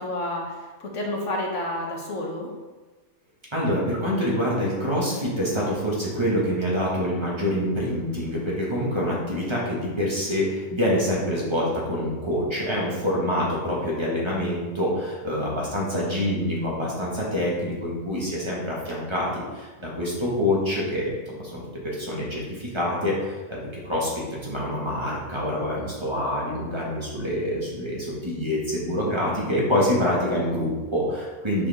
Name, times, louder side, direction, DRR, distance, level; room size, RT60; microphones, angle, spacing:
voice 1, 0.0-2.5, left 1 dB, 60° left, -1 dB, 1.5 m, -30 dB
voice 2, 3.5-23.6 23.8-31.7, left 1 dB, 20° right, -5 dB, 1.6 m, -26 dB
7.1 x 5.0 x 3.5 m, 1.2 s
omnidirectional pair, 1.4 m